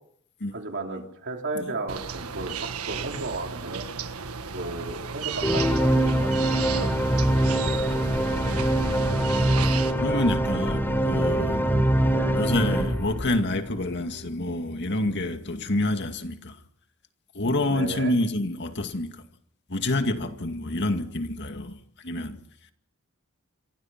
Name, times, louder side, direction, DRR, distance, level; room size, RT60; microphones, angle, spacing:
voice 1, 0.5-3.9 4.5-6.9 12.1-12.4 17.7-18.1, right 2 dB, 55° right, 4.1 m, -34 dB
sound 1, 1.9-9.9, right 6 dB, 90° right, 1.5 m, -34 dB
sound 2, 5.4-13.9, right 1 dB, 10° left, 3.7 m, -23 dB
voice 2, 9.7-11.7 12.4-16.6 17.3-19.2 19.7-21.8 22.0-22.4, left 1 dB, 50° left, 2.1 m, -27 dB
27.5 x 24.5 x 5.9 m
head